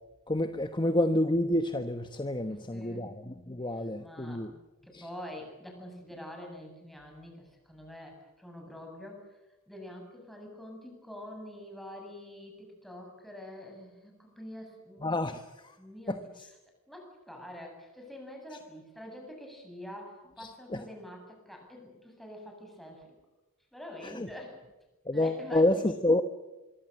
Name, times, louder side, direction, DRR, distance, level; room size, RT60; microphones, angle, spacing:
voice 1, 0.3-4.5 4.9-5.1 15.0-15.8 16.1-16.5 18.5-18.6 20.4-20.8 24.0-24.3 25.0-26.2, left 1 dB, 20° left, 8 dB, 1.1 m, -29 dB
voice 2, 2.5-3.0 4.0-4.5 4.9-9.4 9.7-15.1 15.8-16.2 16.9-23.2 23.7-24.6 25.1-26.0, left 1 dB, ahead, 1 dB, 7.8 m, -46 dB
25.0 x 24.0 x 7.7 m, 1.1 s
head